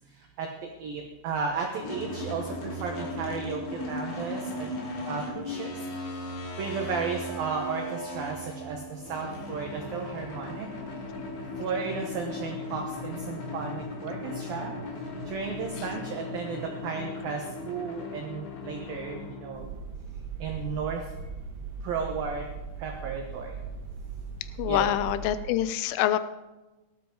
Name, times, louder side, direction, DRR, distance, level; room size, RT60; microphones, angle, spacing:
voice 1, 0.1-4.7 5.0-6.0 6.6-10.7 11.6-14.7 15.2-19.6 20.4-21.1 21.8-22.5 22.8-23.6 24.7-24.9, right 5 dB, 75° right, 2 dB, 2.1 m, -34 dB
sound 1, 1.8-19.7, left 1 dB, 60° left, 4.1 m, -37 dB
sound 2, 19.5-25.3, right 5 dB, 55° right, 3.3 m, -39 dB
voice 2, 24.6-26.2, left 12 dB, 80° left, 13 dB, 3.0 m, -25 dB
17.5 x 13.0 x 3.9 m, 1.1 s
omnidirectional pair, 5.8 m